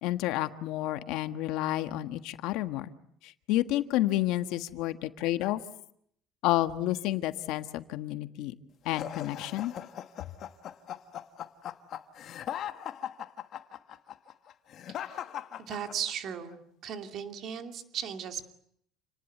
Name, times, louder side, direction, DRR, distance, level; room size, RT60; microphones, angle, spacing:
voice 1, 0.0-2.9 3.2-5.6 6.4-8.5 8.8-9.7, left 15 dB, 65° left, 9 dB, 1.5 m, -30 dB
sound 1, 8.9-16.3, left 10 dB, 40° left, 1.4 m, -39 dB
voice 2, 14.9-15.3 15.6-18.5, right 8 dB, 40° right, 6 dB, 2.6 m, -37 dB
29.5 x 19.5 x 9.3 m, 0.70 s
cardioid pair, 175°, 0 cm